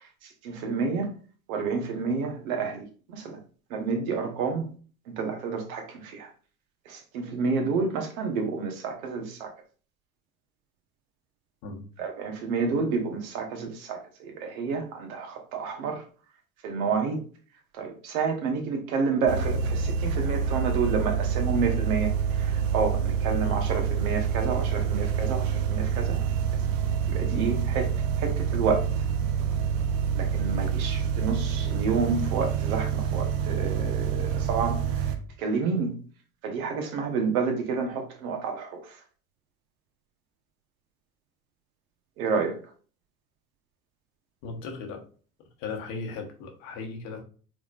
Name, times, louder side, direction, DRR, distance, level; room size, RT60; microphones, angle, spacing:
voice 1, 0.4-1.1 1.5-3.4 3.7-4.7 5.1-6.3 6.9-9.5 12.0-16.0 16.6-17.2 17.8-26.2 27.1-27.9 28.2-28.8 30.1-35.1 35.4-36.0 36.4-39.0 42.2-42.6, right 5 dB, 65° right, 1.2 m, -29 dB
sound 1, 19.3-35.2, right 7 dB, 50° right, 0.8 m, -27 dB
voice 2, 44.4-45.0 45.6-47.2, left 4 dB, 60° left, 1.2 m, -37 dB
4.9 x 3.7 x 2.4 m
figure-of-eight pair, 70°, 44 cm